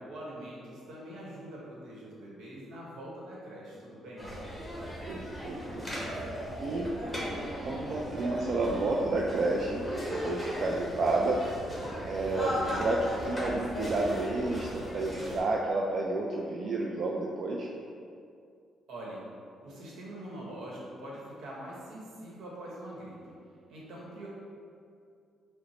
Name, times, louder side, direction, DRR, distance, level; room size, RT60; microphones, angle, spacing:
voice 1, 0.0-4.3 18.9-19.2 19.6-23.4 23.7-24.3, right 1 dB, 80° right, -5 dB, 1.0 m, -43 dB
sound 1, 4.2-15.4, equal, 5° left, 1.0 m, -36 dB
voice 2, 5.0-5.6 6.6-6.9 7.6-9.8 10.1-11.4 12.1-17.7, right 2 dB, 55° right, -2 dB, 0.3 m, -30 dB
5.3 x 2.1 x 3.1 m, 2.4 s
cardioid pair, 90°, 0 cm